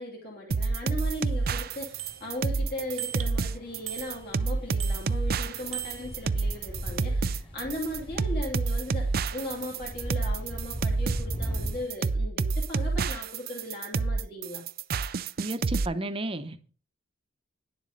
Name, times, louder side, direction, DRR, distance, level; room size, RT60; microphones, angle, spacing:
voice 1, 0.0-14.6, left 1 dB, 50° left, 3.0 m, -38 dB
sound 1, 0.5-15.9, right 4 dB, 45° right, 0.4 m, -28 dB
sound 2, 0.8-11.9, equal, 25° left, 2.6 m, -40 dB
Bicycle bell, 2.0-2.6 3.0-3.5 3.9-4.5 4.8-5.3 5.7-6.5, right 13 dB, 80° right, 1.2 m, -40 dB
voice 2, 15.4-16.7, right 1 dB, 25° right, 0.9 m, -33 dB
10.5 x 7.4 x 5.3 m
head